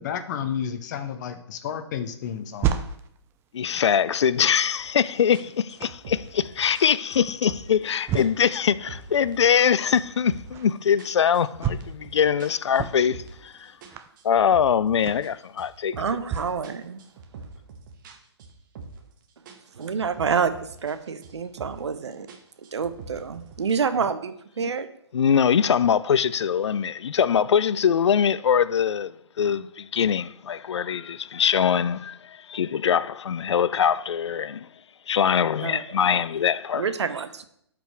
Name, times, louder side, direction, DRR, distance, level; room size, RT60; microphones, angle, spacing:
voice 1, 0.0-2.7, left 8 dB, 40° left, 0.9 m, -31 dB
sound 1, 2.2-16.6 17.1-17.2, right 9 dB, 15° right, 0.5 m, -35 dB
voice 2, 3.5-13.7 14.2-16.0 24.6-24.7 25.1-29.1 29.4-34.7 35.1-36.8, left 8 dB, 75° left, 0.4 m, -23 dB
sound 2, 4.8-5.0 5.3-7.9 8.2-9.7 9.9-10.6 11.0-13.5 13.8-16.3 16.6-19.2 19.4-21.0 21.2-21.9 22.3-23.7, right 4 dB, 45° right, 1.3 m, -44 dB
voice 3, 16.0-17.0 19.7-22.3 22.7-24.9 35.6-35.8 36.7-37.4, right 6 dB, 70° right, 0.8 m, -28 dB
12.0 x 5.1 x 3.3 m
figure-of-eight pair, 130°, 15 cm